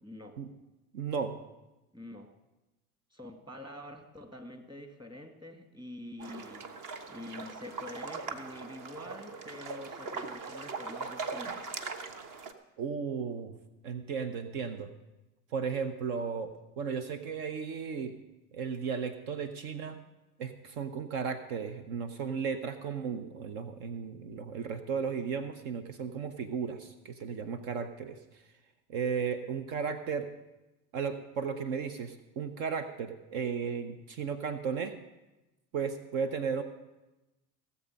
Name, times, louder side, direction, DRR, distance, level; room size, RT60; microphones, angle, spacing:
voice 1, 0.0-0.4 1.9-2.3 3.1-6.7 7.1-11.7, left 1 dB, 10° right, 6 dB, 1.7 m, -46 dB
voice 2, 0.9-1.4 12.8-13.6 13.8-14.9 15.5-18.2 18.5-20.0 20.4-28.2 28.9-30.3 30.9-34.9 35.7-36.6, right 6 dB, 65° right, 10 dB, 0.9 m, -35 dB
sound 1, 6.2-12.5, right 4 dB, 45° right, 1.2 m, -40 dB
17.0 x 7.4 x 5.2 m, 1.0 s
hypercardioid pair, 70°, 45 cm